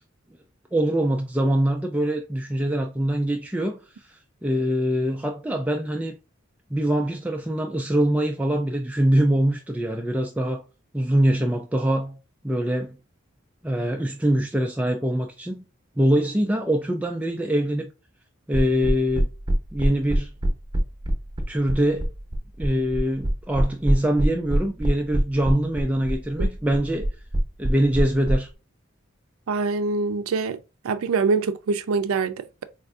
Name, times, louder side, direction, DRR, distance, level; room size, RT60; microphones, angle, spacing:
voice 1, 0.7-3.8 4.1-6.1 6.7-10.6 10.9-12.2 12.4-13.0 13.6-15.6 16.0-17.9 18.5-19.3 19.7-20.3 21.5-22.1 22.6-27.1 27.6-28.5, right 1 dB, 5° right, 0.3 m, -23 dB
sound 1, 18.5-28.3, right 1 dB, 20° right, 0.7 m, -23 dB
voice 2, 29.5-30.6 30.8-32.6, right 4 dB, 85° right, 0.4 m, -24 dB
4.3 x 2.5 x 2.4 m
head